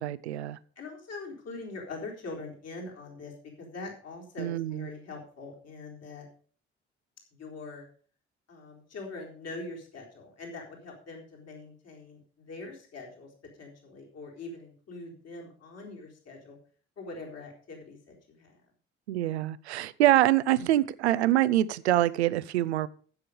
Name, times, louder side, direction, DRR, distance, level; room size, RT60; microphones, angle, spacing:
voice 1, 0.0-0.6 4.4-4.9 19.1-22.9, right 14 dB, 75° right, 17 dB, 0.6 m, -25 dB
voice 2, 0.8-3.3 3.6-6.3 7.4-7.8 8.5-13.3 13.6-16.6 17.0-18.6, left 3 dB, 50° left, 0 dB, 4.2 m, -43 dB
15.0 x 6.8 x 5.2 m, 0.43 s
figure-of-eight pair, 45°, 33 cm